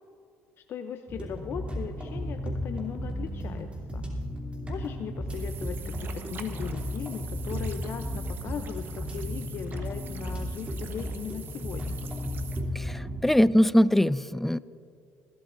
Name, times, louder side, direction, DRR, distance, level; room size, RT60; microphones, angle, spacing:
voice 1, 0.6-4.0 4.7-12.0, left 8 dB, 55° left, 7 dB, 0.6 m, -38 dB
sound 1, 1.1-13.2, equal, 25° right, 2.9 m, -34 dB
sound 2, 5.3-12.6, right 6 dB, 45° right, 1.1 m, -46 dB
voice 2, 12.8-14.6, equal, 5° left, 18 dB, 0.3 m, -22 dB
21.0 x 12.5 x 2.6 m, 2.5 s
supercardioid pair, 90°, 5 cm